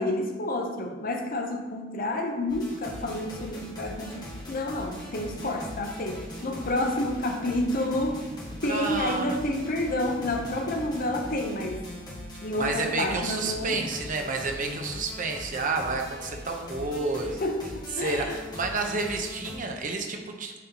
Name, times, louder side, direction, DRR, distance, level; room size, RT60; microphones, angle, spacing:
voice 1, 0.0-8.2 8.6-11.8 12.4-13.8 17.4-17.6 18.0-18.4, left 1 dB, 45° left, 4 dB, 0.6 m, -29 dB
sound 1, 2.5-19.6, left 1 dB, 20° left, 1.3 m, -41 dB
sound 2, 5.3-15.0, right 4 dB, 60° right, 1.2 m, -48 dB
voice 2, 8.7-9.4 12.5-17.5 18.0-20.5, right 3 dB, 45° right, 3 dB, 0.7 m, -30 dB
9.3 x 4.2 x 2.8 m, 1.2 s
head